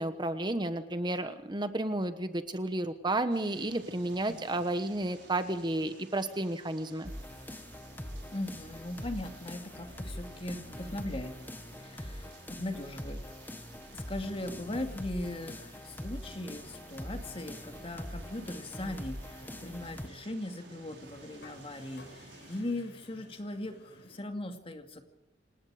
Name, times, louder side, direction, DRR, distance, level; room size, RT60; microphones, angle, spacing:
voice 1, 0.0-7.1, right 1 dB, 25° right, 10 dB, 1.1 m, -32 dB
Storm at Sea, 3.3-22.6, right 3 dB, 75° right, 5.3 m, -54 dB
sound 1, 7.0-20.1, left 1 dB, 10° left, 1.2 m, -43 dB
voice 2, 8.3-11.3 11.8-13.2 13.9-25.0, left 1 dB, 30° left, 6 dB, 2.4 m, -39 dB
sound 2, 15.8-24.2, left 1 dB, 65° left, 5.9 m, -58 dB
27.5 x 19.0 x 4.9 m, 0.88 s
head